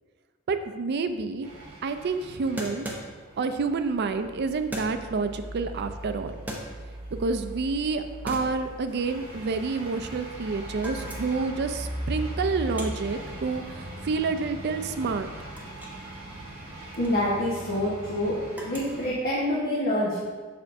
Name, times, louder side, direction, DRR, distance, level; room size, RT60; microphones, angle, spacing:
voice 1, 0.5-1.5 1.8-2.9 3.4-6.3 7.2-15.3, right 4 dB, 50° right, 9 dB, 0.4 m, -29 dB
sound 1, 0.9-1.0 1.2-1.3 2.6-3.5 4.7-5.2 6.2-7.2 7.6-7.9 8.3-10.4 10.7-11.5 11.8-16.1 16.3-19.6, right 1 dB, 10° right, 0.7 m, -40 dB
sound 2, 1.4-19.1, right 1 dB, 30° right, 1.9 m, -39 dB
voice 2, 17.0-18.4 18.6-20.3, left 1 dB, 45° left, -7 dB, 1.1 m, -26 dB
6.7 x 5.9 x 2.6 m, 1.4 s
head